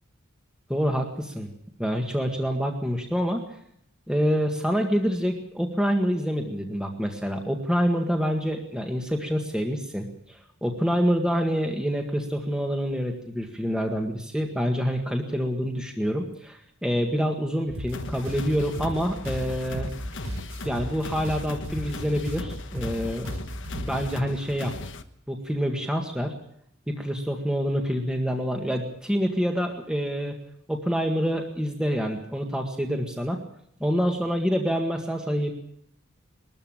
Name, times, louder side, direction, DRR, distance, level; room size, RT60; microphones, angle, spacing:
voice 1, 0.7-1.5 1.8-3.4 4.1-19.9 20.6-23.3 23.8-24.7 25.3-26.3 26.9-30.4 30.7-33.4 33.8-35.5, equal, 5° right, 2 dB, 1.8 m, -27 dB
sound 1, 17.7-24.2, equal, 70° right, 5.4 m, -36 dB
sound 2, 17.9-25.0, left 3 dB, 55° left, 1.3 m, -38 dB
21.0 x 14.0 x 8.9 m, 0.72 s
head